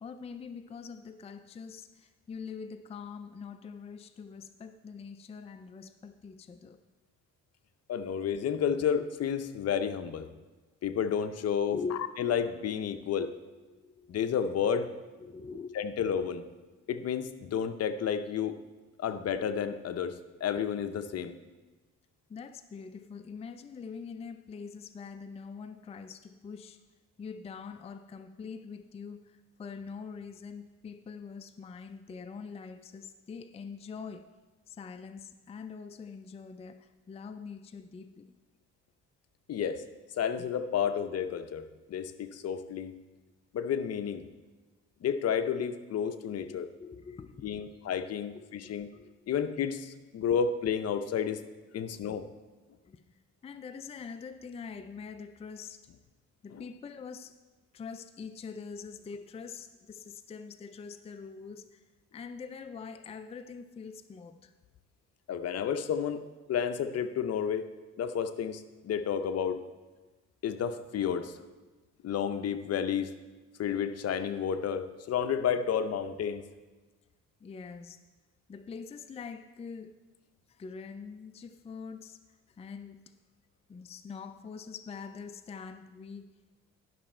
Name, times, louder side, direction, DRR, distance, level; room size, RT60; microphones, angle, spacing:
voice 1, 0.0-6.8 11.7-12.0 13.3-14.2 15.2-15.7 22.3-26.8 27.2-34.3 34.7-38.4 40.4-40.5 46.5-47.7 48.6-49.3 50.2-50.3 52.9-53.0 53.4-55.8 56.4-57.3 57.7-61.8 62.1-64.5 77.4-78.0 78.5-80.0 80.5-82.2 82.6-83.1 83.7-86.4, left 5 dB, 20° left, 9 dB, 0.4 m, -44 dB
voice 2, 7.9-10.3 10.8-11.8 12.2-13.3 14.1-14.9 15.7-16.4 16.9-18.6 19.0-21.4 39.5-39.8 40.2-41.6 41.9-42.9 43.5-44.2 45.0-46.7 47.4-48.9 49.3-51.4 51.7-52.3 56.5-56.6 65.3-66.2 66.5-67.6 68.0-69.6 70.4-71.3 72.0-73.1 73.6-76.4, left 7 dB, 55° left, 10 dB, 0.7 m, -31 dB
11.0 x 6.2 x 4.4 m, 1.2 s
cardioid pair, 90°, 30 cm